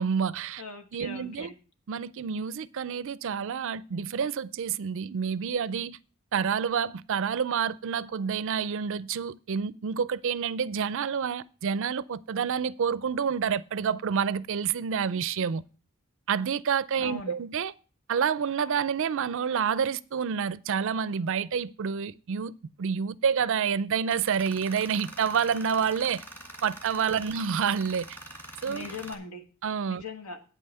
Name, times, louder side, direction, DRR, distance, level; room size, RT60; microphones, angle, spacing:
voice 1, 0.0-0.6 0.9-1.5 1.9-6.0 6.3-15.6 16.3-17.7 18.1-26.2 26.6-28.1 28.6-28.9 29.6-30.0, right 7 dB, 60° right, 0.4 m, -28 dB
voice 2, 0.6-1.6 17.0-17.3 28.6-29.5 29.9-30.4, left 3 dB, 75° left, 1.4 m, -40 dB
Tools, 24.1-29.1, right 1 dB, 10° left, 1.4 m, -45 dB
8.6 x 5.5 x 7.7 m
head